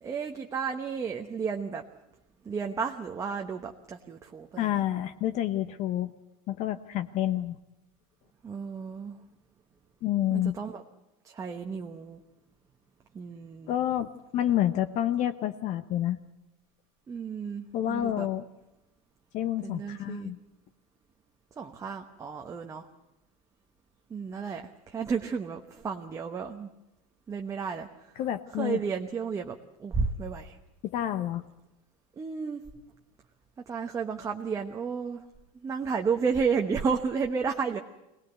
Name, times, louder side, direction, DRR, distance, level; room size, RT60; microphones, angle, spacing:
voice 1, 0.0-1.8 2.4-4.7 8.4-9.2 10.3-10.8 11.2-12.2 13.1-13.7 17.1-18.3 19.6-20.3 21.6-22.9 24.1-26.7 27.3-28.1 28.6-30.6 32.2-32.6 33.7-35.2 35.6-37.8, right 5 dB, 15° right, 3 dB, 1.0 m, -32 dB
voice 2, 4.6-6.1 6.5-7.6 10.0-10.6 13.7-16.2 17.7-18.4 19.3-20.4 28.2-28.8 30.8-31.5, left 12 dB, 40° left, 10 dB, 0.8 m, -29 dB
23.5 x 19.0 x 8.1 m, 0.95 s
cardioid pair, 165°, 18 cm